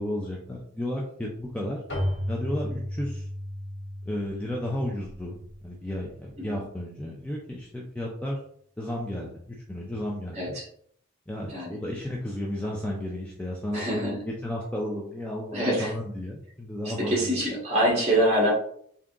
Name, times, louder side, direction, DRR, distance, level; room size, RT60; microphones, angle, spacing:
voice 1, 0.0-1.8 2.3-3.3 4.0-5.4 5.6-8.4 8.8-10.6 11.3-14.1 14.4-17.4, left 1 dB, 5° left, -2 dB, 0.4 m, -33 dB
Keyboard (musical), 1.9-6.4, equal, 50° left, 1.5 m, -34 dB
voice 2, 10.3-10.7 11.5-11.8 13.7-14.3 15.5-15.9 17.1-18.5, right 1 dB, 30° right, -4 dB, 1.5 m, -25 dB
3.7 x 2.8 x 3.5 m, 0.64 s
head